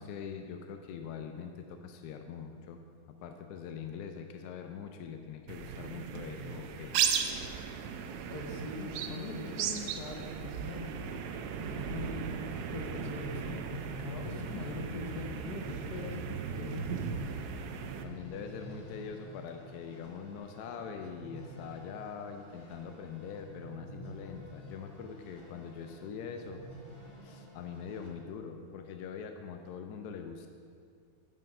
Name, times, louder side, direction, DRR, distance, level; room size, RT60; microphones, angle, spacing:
voice 1, 0.0-2.8 3.1-6.9 18.0-26.6 27.2-30.5, left 6 dB, 80° left, 6 dB, 0.8 m, -43 dB
sound 1, 5.5-18.0, right 7 dB, 80° right, 0.9 m, -37 dB
voice 2, 8.3-10.9 11.6-12.4 12.7-17.2, left 3 dB, 55° left, 2 dB, 1.3 m, -41 dB
sound 2, 11.3-28.1, right 1 dB, 15° left, 1.3 m, -50 dB
9.1 x 5.7 x 5.3 m, 2.2 s
omnidirectional pair, 2.2 m